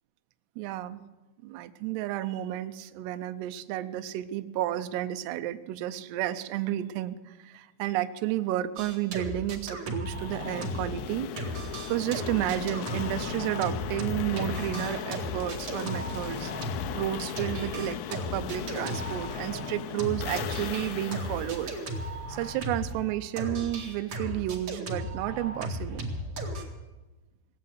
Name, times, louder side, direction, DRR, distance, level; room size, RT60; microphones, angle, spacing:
voice 1, 0.6-1.0 1.4-11.3 11.9-16.5 16.9-21.7 22.3-26.1, right 13 dB, 90° right, 10 dB, 2.4 m, -32 dB
sound 1, 8.8-11.1 11.4-23.0 23.4-26.6, right 1 dB, 50° right, 1.8 m, -36 dB
sound 2, 10.1-22.9, left 12 dB, 80° left, 3.0 m, -38 dB
18.0 x 8.5 x 8.0 m, 1.1 s
omnidirectional pair, 5.7 m